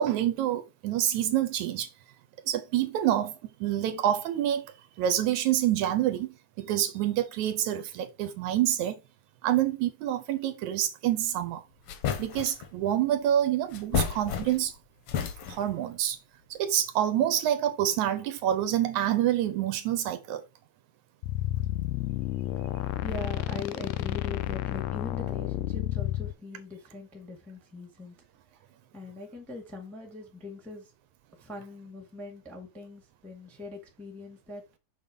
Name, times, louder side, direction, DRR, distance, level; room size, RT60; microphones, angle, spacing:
voice 1, 0.0-1.9 2.5-9.0 9.4-11.6 12.2-14.7 15.5-16.2 16.5-20.4, right 11 dB, 75° right, 2.1 m, -27 dB
sound 1, 11.4-11.5 11.9-12.7 13.7-14.8 15.1-15.8, left 7 dB, 65° left, 1.6 m, -31 dB
sound 2, 21.2-26.3, left 15 dB, 80° left, 1.6 m, -31 dB
voice 2, 23.0-28.1 28.9-30.9 31.3-34.6, left 3 dB, ahead, 1.1 m, -41 dB
6.5 x 4.0 x 5.2 m
omnidirectional pair, 3.6 m